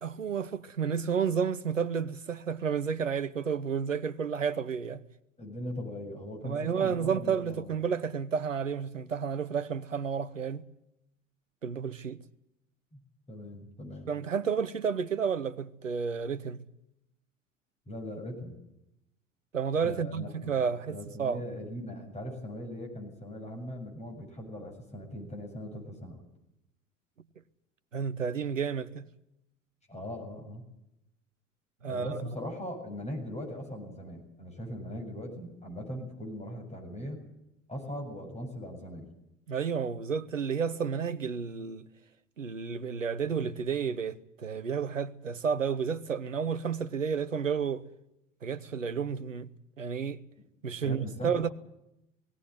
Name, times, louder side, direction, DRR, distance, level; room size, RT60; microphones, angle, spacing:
voice 1, 0.0-5.0 6.4-10.7 11.6-12.2 14.1-16.6 19.5-21.4 27.9-29.1 31.8-32.1 39.5-41.9 42.4-47.8 48.4-49.5 49.8-50.2 50.6-51.5, right 6 dB, 80° right, 0.9 m, -31 dB
voice 2, 5.4-7.7 12.9-13.0 13.3-14.1 17.9-18.6 19.8-26.2 29.9-30.6 31.9-37.2 37.7-39.1 50.8-51.5, left 1 dB, 15° left, 7.6 m, -40 dB
18.0 x 18.0 x 9.1 m
figure-of-eight pair, 65°, 37 cm